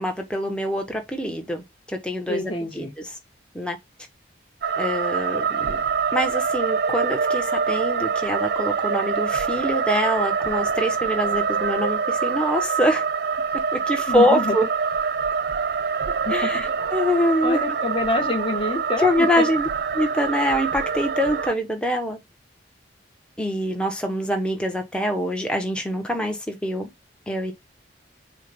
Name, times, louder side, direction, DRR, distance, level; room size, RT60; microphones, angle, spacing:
voice 1, 0.0-2.9 3.5-3.8 4.8-5.8 6.1-13.0 13.7-14.6 16.3-17.6 19.0-19.7 19.9-22.2 23.4-26.9 27.3-27.5, equal, 5° left, 1.2 m, -24 dB
voice 2, 2.3-2.9 14.1-14.6 16.3-16.8 17.4-19.5, left 2 dB, 30° left, 1.6 m, -27 dB
sound 1, 4.6-21.5, right 6 dB, 55° right, 0.4 m, -25 dB
7.5 x 2.6 x 5.3 m
head